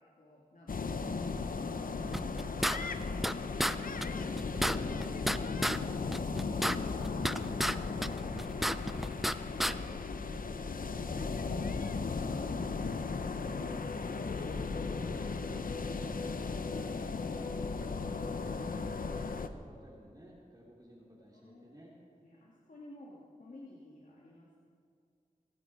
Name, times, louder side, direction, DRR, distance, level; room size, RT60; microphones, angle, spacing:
voice 1, 0.0-4.4 4.7-12.2 21.3-24.6, left 1 dB, 65° left, -4 dB, 2.3 m, -55 dB
sound 1, 0.7-19.5, left 4 dB, 80° left, 0.8 m, -36 dB
sound 2, 2.1-3.3 3.6-3.7 4.0-4.1 4.4-5.8 6.1-7.7 8.0-9.3 9.6-9.7, equal, ahead, 0.5 m, -31 dB
voice 2, 13.4-22.0, equal, 25° right, -6 dB, 3.3 m, -57 dB
sound 3, 13.5-19.5, left 3 dB, 30° left, 0.8 m, -47 dB
26.5 x 9.2 x 4.8 m, 2.4 s
wide cardioid pair, 50°, 14 cm